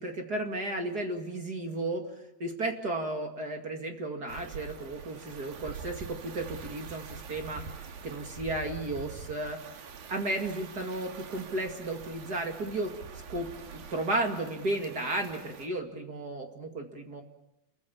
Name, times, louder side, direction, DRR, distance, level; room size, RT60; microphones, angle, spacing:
voice 1, 0.0-2.0 2.4-7.6 8.0-9.6 10.1-12.9 13.3-17.2, right 2 dB, 35° right, 4 dB, 2.1 m, -34 dB
sound 1, 4.3-15.7, right 6 dB, 85° right, 4.0 m, -45 dB
29.5 x 22.5 x 7.1 m, 0.83 s
omnidirectional pair, 4.1 m